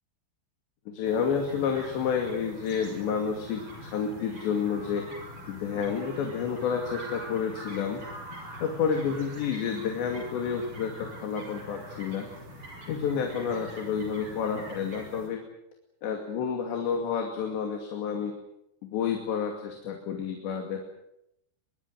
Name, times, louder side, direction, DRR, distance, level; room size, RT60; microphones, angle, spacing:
voice 1, 0.9-5.1 5.5-8.0 8.6-12.3 12.9-15.4 16.0-18.3 18.8-20.8, left 6 dB, 75° left, 3 dB, 4.6 m, -30 dB
sound 1, 1.0-15.3, equal, 30° right, 7.2 m, -44 dB
23.0 x 23.0 x 8.0 m, 0.81 s
omnidirectional pair, 5.1 m